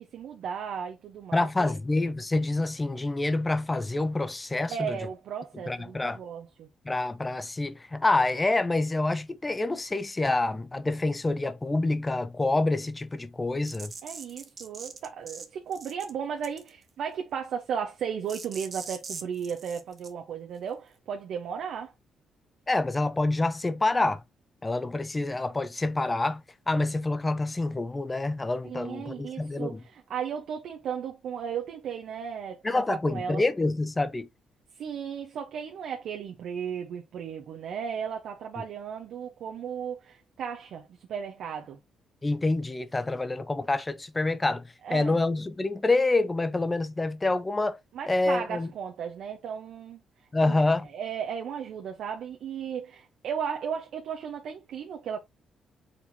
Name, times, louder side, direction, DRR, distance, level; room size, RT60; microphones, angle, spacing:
voice 1, 0.0-1.7 4.7-6.7 14.0-21.9 28.6-33.4 34.8-41.8 44.8-45.2 47.9-50.0 50.4-50.6 50.9-55.2, right 7 dB, 60° right, 0.8 m, -35 dB
voice 2, 1.3-5.0 5.7-6.2 6.9-13.9 22.7-24.2 24.6-29.8 32.6-34.3 42.2-44.6 44.9-47.8 48.1-48.7 50.3-50.9, left 2 dB, 15° left, 0.4 m, -27 dB
sound 1, 13.7-15.5 15.7-16.1 16.4-16.8 18.3-20.1, right 5 dB, 30° right, 0.8 m, -41 dB
4.4 x 4.2 x 2.7 m
cardioid pair, 160°, 0 cm